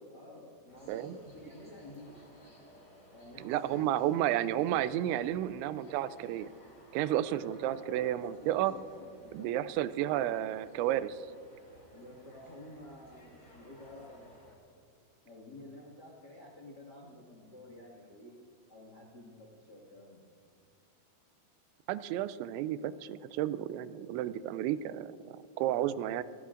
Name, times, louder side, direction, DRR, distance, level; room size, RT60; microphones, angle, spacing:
voice 1, 0.1-2.3 3.1-4.0 7.6-9.7 10.1-10.2 11.9-14.3 15.2-18.3 18.7-20.2 25.6-26.2, left 1 dB, 65° left, -2 dB, 1.0 m, -51 dB
sound 1, 0.7-14.5, left 1 dB, 20° left, 2.7 m, -58 dB
voice 2, 3.4-6.5 6.9-8.7 9.3-11.2 21.9-26.2, right 12 dB, 85° right, 15 dB, 2.8 m, -32 dB
27.5 x 16.5 x 2.5 m, 2.3 s
omnidirectional pair, 5.2 m